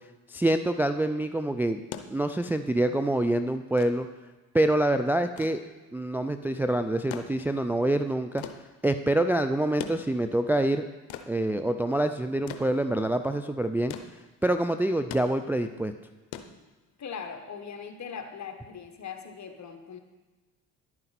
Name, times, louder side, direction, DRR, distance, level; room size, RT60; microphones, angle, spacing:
voice 1, 0.3-1.8 2.1-4.1 4.5-5.6 5.9-8.4 8.8-10.9 11.3-13.9 14.4-15.9, right 1 dB, 5° right, 8 dB, 0.4 m, -26 dB
sound 1, 1.9-17.2 18.4-18.5, left 9 dB, 80° left, 0.8 m, -44 dB
voice 2, 17.0-20.0, left 6 dB, 45° left, 5 dB, 1.4 m, -40 dB
11.0 x 9.0 x 4.2 m, 1.2 s
supercardioid pair, 65°, 38 cm